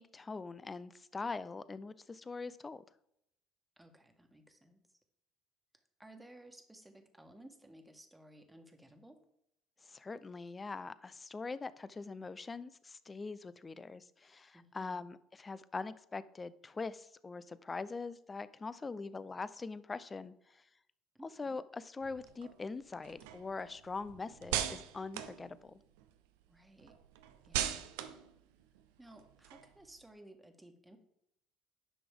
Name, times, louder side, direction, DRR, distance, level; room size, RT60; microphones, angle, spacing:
voice 1, 0.0-2.8 9.9-20.6 21.4-25.8, left 4 dB, 25° left, 16 dB, 0.6 m, -43 dB
voice 2, 3.8-4.8 6.0-9.2 14.5-15.0 21.1-21.6 26.5-26.9 27.4-27.9 29.0-31.0, right 1 dB, 10° right, 6 dB, 1.6 m, -57 dB
sound 1, 22.0-26.2 26.6-30.0, right 10 dB, 75° right, 0.6 m, -41 dB
10.0 x 6.0 x 3.6 m, 0.76 s
hypercardioid pair, 60°, 0 cm